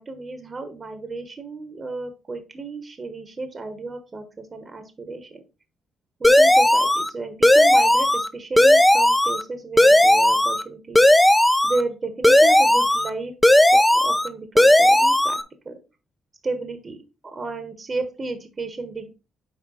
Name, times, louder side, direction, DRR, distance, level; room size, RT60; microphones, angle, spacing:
voice 1, 0.0-5.4 6.2-11.0 11.6-13.3 13.7-15.4 15.6-15.7 16.4-19.1, right 3 dB, 30° right, 8 dB, 1.1 m, -33 dB
sound 1, 6.2-7.1 7.4-8.3 8.6-9.4 9.8-10.6 11.0-11.8 12.2-13.1 13.4-14.3 14.6-15.4, left 1 dB, 5° left, 0.6 m, -15 dB
6.3 x 4.3 x 4.1 m, 0.30 s
cardioid pair, 90°, 0 cm